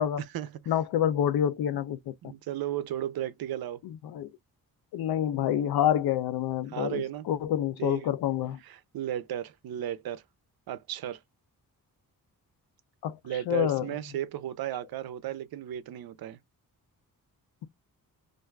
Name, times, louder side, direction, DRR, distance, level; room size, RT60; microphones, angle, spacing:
voice 1, 0.7-2.1 3.8-4.3 4.9-8.6 13.0-13.2 13.5-13.8, left 10 dB, 85° left, 0.5 m, -27 dB
voice 2, 2.2-3.8 6.7-7.3 7.8-8.1 8.6-10.2 10.7-11.2 13.2-16.4, right 11 dB, 75° right, 0.5 m, -34 dB
2.5 x 2.3 x 3.1 m
wide cardioid pair, 165°, 36 cm